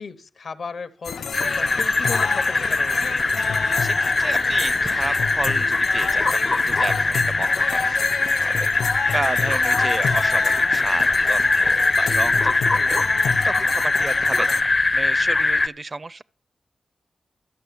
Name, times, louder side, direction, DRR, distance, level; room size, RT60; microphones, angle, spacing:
voice 1, 0.0-3.1 12.8-13.0, left 5 dB, 70° left, 0.9 m, -36 dB
sound 1, 1.0-14.6, left 6 dB, 90° left, 0.5 m, -30 dB
sound 2, 1.3-15.7, left 3 dB, 40° left, 0.5 m, -21 dB
voice 2, 3.8-8.7 9.1-13.0 13.4-16.2, right 3 dB, 35° right, 0.4 m, -32 dB
12.5 x 5.7 x 8.4 m
cardioid pair, 75°, 0 cm